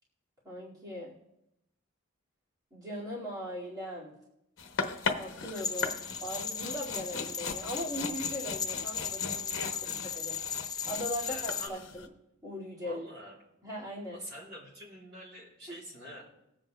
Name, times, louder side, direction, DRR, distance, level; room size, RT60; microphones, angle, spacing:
voice 1, 0.4-1.1 2.7-4.1 5.2-5.9 6.2-9.7 10.1-12.1 12.4-13.1 13.6-14.2 15.7-15.8, equal, 15° right, -7 dB, 2.0 m, -39 dB
sound 1, 4.6-12.1, left 4 dB, 60° left, 0.9 m, -38 dB
sound 2, 5.5-11.7, left 6 dB, 20° left, 0.3 m, -36 dB
voice 2, 9.7-10.0 11.2-11.8 12.8-13.3 14.1-16.2, equal, 55° right, -4 dB, 3.4 m, -47 dB
20.5 x 7.9 x 2.2 m, 0.86 s
head